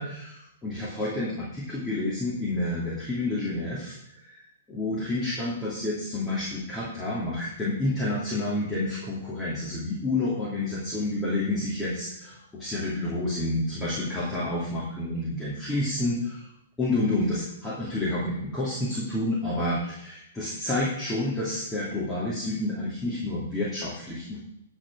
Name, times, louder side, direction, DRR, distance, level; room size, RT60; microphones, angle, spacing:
voice 1, 0.0-4.0 4.2-4.4 4.7-16.4 16.8-24.4, left 2 dB, 10° left, -7 dB, 2.8 m, -29 dB
13.0 x 4.7 x 6.2 m, 0.76 s
hypercardioid pair, 140°, 0 cm